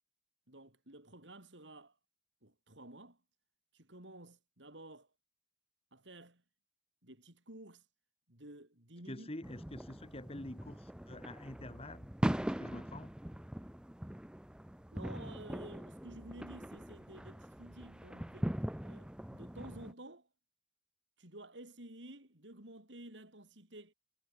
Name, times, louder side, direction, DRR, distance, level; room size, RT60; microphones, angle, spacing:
voice 1, 0.5-2.0 2.4-3.2 3.7-5.1 5.9-6.4 7.0-7.8 8.3-9.3 14.9-18.5 18.8-20.3 21.2-23.9, right 1 dB, 80° right, 6.5 m, -52 dB
voice 2, 9.1-12.1 12.4-13.1, left 1 dB, 35° left, 2.0 m, -47 dB
sound 1, 9.4-19.9, equal, 5° right, 0.6 m, -41 dB
head